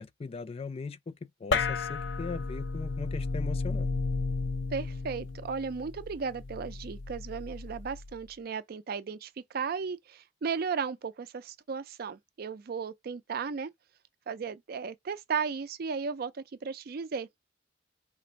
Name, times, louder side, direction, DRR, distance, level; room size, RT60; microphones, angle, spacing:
voice 1, 0.0-3.9, left 4 dB, 35° left, 0.3 m, -39 dB
sound 1, 1.5-8.2, left 4 dB, 80° left, 0.6 m, -33 dB
voice 2, 4.7-13.7 14.3-17.4, right 5 dB, 55° right, 0.4 m, -35 dB
3.7 x 2.5 x 4.3 m
head